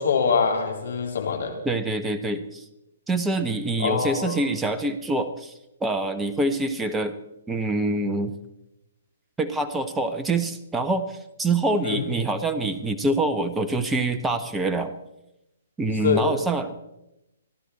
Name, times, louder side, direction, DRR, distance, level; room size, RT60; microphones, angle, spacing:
voice 1, 0.0-1.6 3.8-4.4 11.8-12.0 16.0-16.3, left 6 dB, 65° left, 3 dB, 3.7 m, -24 dB
voice 2, 1.6-2.6 3.1-5.5 5.8-7.1 7.5-8.3 9.4-14.9 15.8-16.8, right 2 dB, 10° right, 8 dB, 1.2 m, -25 dB
29.5 x 11.5 x 4.2 m, 0.90 s
figure-of-eight pair, 130°, 0 cm